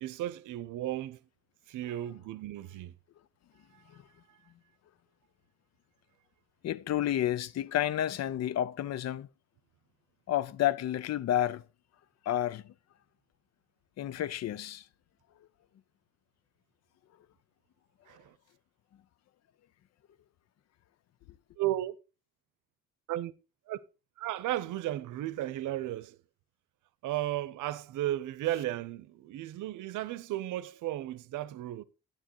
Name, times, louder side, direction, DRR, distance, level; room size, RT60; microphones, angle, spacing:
voice 1, 0.0-1.2 1.7-2.9 3.7-3.8 18.1-18.3 21.6-21.9 23.1-23.3 23.7-23.8 24.2-26.2 27.0-31.8, right 14 dB, 80° right, 0.7 m, -34 dB
voice 2, 6.6-9.3 10.3-11.6 12.2-12.7 14.0-14.8, left 12 dB, 60° left, 0.6 m, -30 dB
10.5 x 8.8 x 2.9 m
cardioid pair, 90°, 30 cm